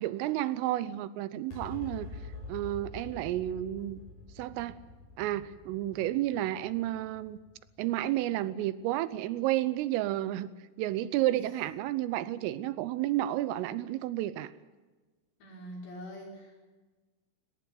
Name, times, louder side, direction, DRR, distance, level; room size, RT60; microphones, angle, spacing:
voice 1, 0.0-2.1 2.5-4.0 4.4-4.8 5.2-7.4 7.8-10.5 10.8-14.5, right 14 dB, 80° right, 16 dB, 3.3 m, -31 dB
sound 1, 1.5-8.2, left 3 dB, 35° left, 7.2 m, -46 dB
voice 2, 15.4-16.6, equal, 55° left, 0 dB, 7.6 m, -44 dB
18.5 x 18.5 x 9.5 m, 1.3 s
omnidirectional pair, 5.9 m